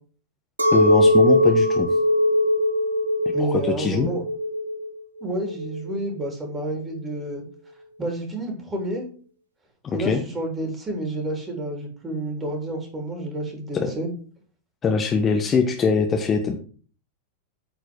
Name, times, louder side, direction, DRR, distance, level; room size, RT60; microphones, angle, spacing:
Chink clink, 0.6-6.0, left 1 dB, 75° right, 0.9 m, -20 dB
voice 1, 0.7-1.9 3.4-4.1 9.8-10.2 13.7-13.9 14.8-16.6, left 5 dB, 25° left, 3 dB, 1.2 m, -22 dB
voice 2, 3.3-4.2 5.2-7.4 8.0-9.1 9.9-14.1, right 1 dB, 20° right, 2 dB, 3.5 m, -29 dB
9.0 x 4.7 x 6.2 m, 0.42 s
figure-of-eight pair, 90°, 0 cm